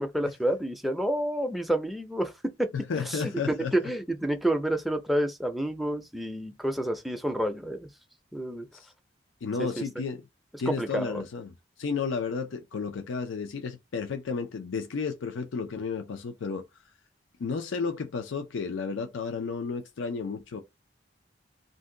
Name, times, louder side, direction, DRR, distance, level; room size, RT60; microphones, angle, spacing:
voice 1, 0.0-2.3 2.6-2.7 3.1-7.9 8.3-8.7 9.6-9.8 10.7-11.2, right 1 dB, ahead, 0.4 m, -29 dB
voice 2, 2.7-3.7 8.7-8.9 9.4-10.2 10.6-11.5 11.8-16.7 17.4-20.6, left 5 dB, 85° left, 0.4 m, -32 dB
2.6 x 2.1 x 3.7 m
head